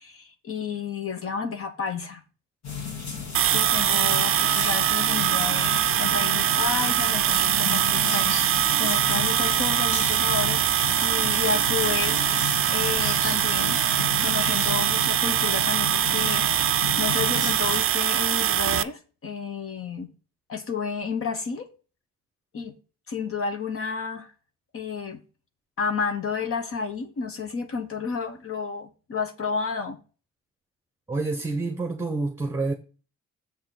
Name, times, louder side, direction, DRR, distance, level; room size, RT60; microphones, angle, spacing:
voice 1, 0.0-2.2 3.5-8.4 8.7-13.8 14.2-20.1 20.5-21.7 22.5-22.7 23.1-24.3 24.7-25.2 25.8-30.0, left 5 dB, 45° left, 1.0 m, -31 dB
sound 1, 2.6-17.8, left 4 dB, 65° left, 2.5 m, -33 dB
sound 2, 3.3-18.8, right 11 dB, 45° right, 0.5 m, -23 dB
voice 2, 31.1-32.7, right 3 dB, 10° right, 0.9 m, -28 dB
7.2 x 3.8 x 6.5 m
cardioid pair, 90°, 30 cm